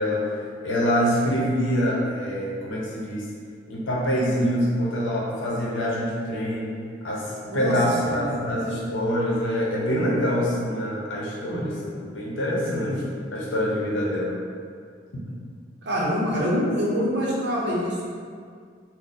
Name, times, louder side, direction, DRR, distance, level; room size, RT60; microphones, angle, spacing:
voice 1, 0.0-3.2 3.7-6.7 7.0-13.0 13.3-14.4 15.1-15.2, equal, 85° left, -4 dB, 0.7 m, -25 dB
voice 2, 7.5-7.8 8.0-8.6 11.5-11.8 12.6-13.0 15.8-18.0, equal, 65° right, -5 dB, 0.7 m, -26 dB
2.6 x 2.2 x 3.8 m, 2.1 s
head